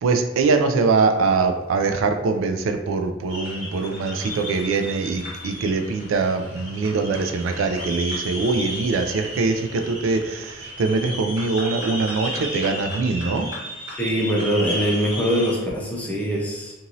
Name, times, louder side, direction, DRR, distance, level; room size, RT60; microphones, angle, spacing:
voice 1, 0.0-13.5, right 4 dB, 85° right, 6 dB, 0.3 m, -23 dB
sound 1, 3.3-15.6, equal, 25° right, 1.2 m, -34 dB
voice 2, 13.9-16.7, equal, 5° left, -4 dB, 0.6 m, -23 dB
2.9 x 2.6 x 2.5 m, 0.98 s
head